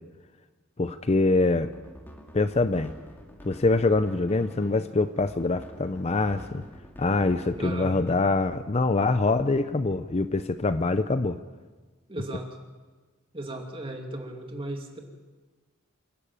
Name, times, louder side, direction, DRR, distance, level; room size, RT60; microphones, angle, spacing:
voice 1, 0.8-1.7 2.3-2.9 3.4-6.6 7.0-11.4, left 3 dB, 30° left, 11 dB, 0.6 m, -24 dB
sound 1, 1.6-8.6, equal, 10° left, 2.2 m, -47 dB
voice 2, 7.6-8.0 12.1-12.5 13.3-15.0, right 1 dB, 25° right, 3 dB, 2.6 m, -36 dB
28.0 x 12.0 x 8.8 m, 1.3 s
head